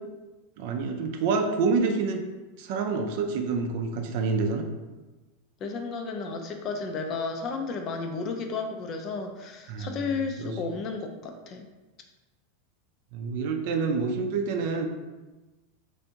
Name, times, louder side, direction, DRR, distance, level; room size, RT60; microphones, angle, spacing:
voice 1, 0.6-2.2 2.6-4.6 9.7-10.0 10.4-10.7 13.1-14.9, right 4 dB, 60° right, 5 dB, 0.4 m, -27 dB
voice 2, 5.6-11.7, left 4 dB, 40° left, 4 dB, 0.4 m, -33 dB
3.4 x 2.6 x 2.8 m, 1.2 s
supercardioid pair, 125°, 0 cm